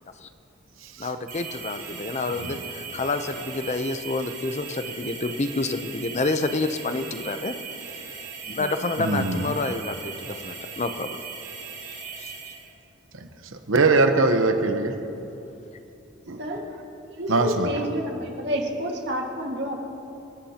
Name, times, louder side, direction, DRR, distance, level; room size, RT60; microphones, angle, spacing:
voice 1, 1.0-7.5 8.5-11.2 11.9-12.3, left 3 dB, 35° left, 9 dB, 0.6 m, -29 dB
sound 1, 1.3-12.7, right 5 dB, 40° right, 4.0 m, -38 dB
voice 2, 9.0-9.4 13.7-14.9 16.3-16.4 17.3-17.7, right 3 dB, 80° right, 6 dB, 1.0 m, -21 dB
voice 3, 16.4-16.8 17.1-19.8, equal, 55° right, 1 dB, 1.9 m, -29 dB
28.0 x 13.5 x 2.9 m, 2.9 s
head